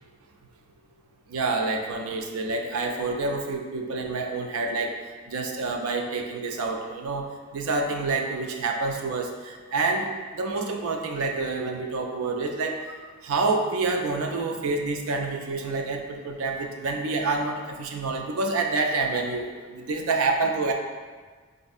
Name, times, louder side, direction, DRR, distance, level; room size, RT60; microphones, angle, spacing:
voice 1, 1.3-4.9 5.3-13.0 13.2-20.7, right 3 dB, 70° right, 3 dB, 0.4 m, -28 dB
4.2 x 2.6 x 2.4 m, 1.5 s
head